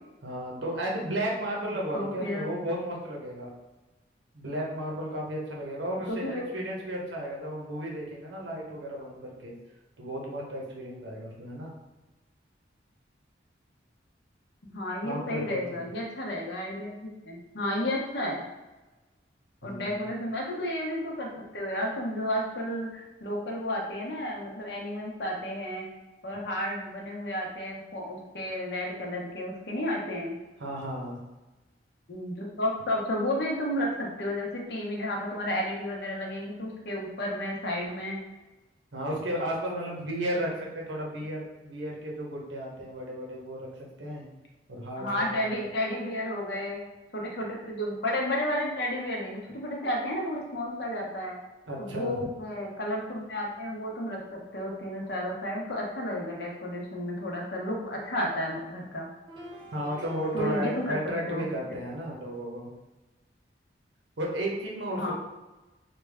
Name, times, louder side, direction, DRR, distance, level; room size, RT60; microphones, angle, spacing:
voice 1, 0.2-3.5 4.3-9.5 10.0-11.7 15.0-15.8 19.6-20.0 30.6-31.2 38.9-44.2 44.7-45.4 51.7-52.3 59.7-62.7 64.2-65.1, equal, 85° right, -2 dB, 0.9 m, -34 dB
voice 2, 1.9-2.4 6.1-6.4 14.6-16.9 17.2-18.4 19.6-21.3 21.5-25.9 26.2-30.3 32.1-38.2 45.0-46.8 47.1-51.4 51.8-59.1 60.3-61.0 61.3-61.4 64.9-65.1, left 1 dB, 65° left, -2 dB, 0.8 m, -32 dB
sound 1, 59.3-61.2, equal, 25° right, 0.5 m, -45 dB
3.3 x 2.2 x 3.4 m, 1.1 s
head